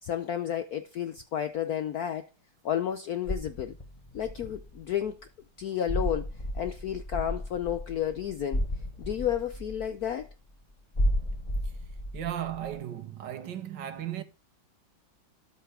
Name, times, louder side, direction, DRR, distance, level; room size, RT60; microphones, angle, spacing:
voice 1, 0.0-2.3 2.6-3.7 4.1-5.3 5.6-6.3 6.5-8.6 9.0-10.3, left 10 dB, 70° left, 0.9 m, -31 dB
sound 1, 3.3-5.0 5.9-10.3 10.9-12.8, equal, 20° left, 1.2 m, -33 dB
voice 2, 12.1-14.2, right 11 dB, 65° right, 1.5 m, -35 dB
13.0 x 5.7 x 4.8 m
omnidirectional pair, 2.3 m